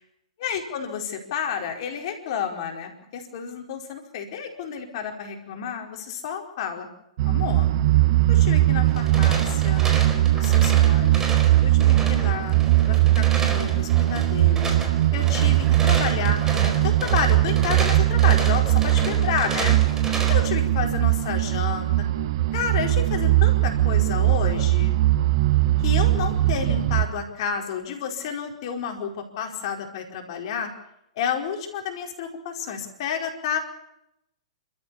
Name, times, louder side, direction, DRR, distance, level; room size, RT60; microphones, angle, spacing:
voice 1, 0.4-6.9 7.2-7.7 8.3-9.9 10.3-11.2 11.6-12.6 12.9-14.8 15.1-18.6 19.1-19.8 20.3-21.9 22.5-25.0 25.8-30.7 31.1-33.6, left 7 dB, 55° left, 3 dB, 4.8 m, -30 dB
sound 1, 7.2-27.1, right 15 dB, 55° right, 1.6 m, -20 dB
sound 2, 8.9-20.5, right 3 dB, 15° right, 4.5 m, -33 dB
30.0 x 14.0 x 7.0 m, 0.81 s
hypercardioid pair, 120°, 3 cm